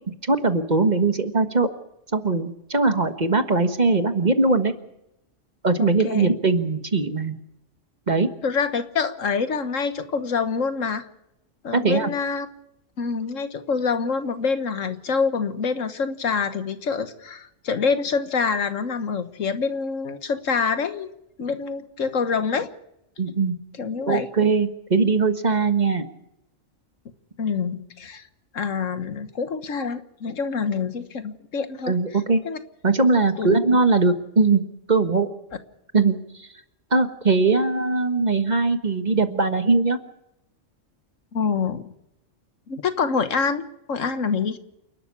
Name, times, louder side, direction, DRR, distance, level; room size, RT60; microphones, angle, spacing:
voice 1, 0.3-1.7 2.1-4.7 5.6-7.3 8.1-8.3 11.7-12.1 23.2-23.5 24.1-26.0 31.9-32.4 32.8-34.6 34.9-35.3 35.9-36.5 36.9-40.0, right 3 dB, 35° right, 8 dB, 1.5 m, -20 dB
voice 2, 5.8-6.4 8.4-11.1 11.6-12.5 13.0-21.1 21.4-22.7 23.8-24.3 27.4-28.2 28.5-31.9 32.4-32.6 33.4-33.6 41.3-41.9 42.7-44.6, left 5 dB, 85° left, 10 dB, 1.7 m, -26 dB
28.5 x 12.0 x 8.5 m, 0.85 s
omnidirectional pair, 1.3 m